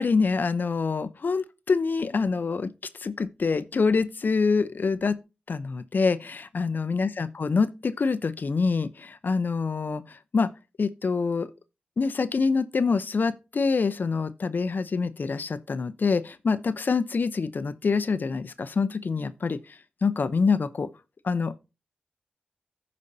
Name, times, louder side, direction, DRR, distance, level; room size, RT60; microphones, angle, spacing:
voice 1, 0.0-2.7 3.0-5.2 5.5-10.5 10.8-11.5 12.0-20.9 21.2-21.6, left 4 dB, 65° left, 0.7 m, -26 dB
15.0 x 5.3 x 2.7 m
cardioid pair, 45°, 3 cm